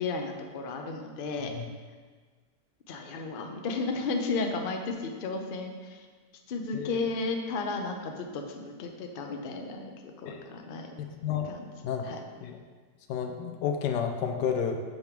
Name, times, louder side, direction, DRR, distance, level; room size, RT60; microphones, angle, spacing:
voice 1, 0.0-1.5 2.9-6.1 6.5-11.0 11.4-11.6 12.0-12.2, left 3 dB, 50° left, 3 dB, 0.6 m, -33 dB
voice 2, 13.1-14.8, left 7 dB, 85° left, 4 dB, 1.3 m, -30 dB
8.1 x 3.5 x 6.0 m, 1.5 s
omnidirectional pair, 1.8 m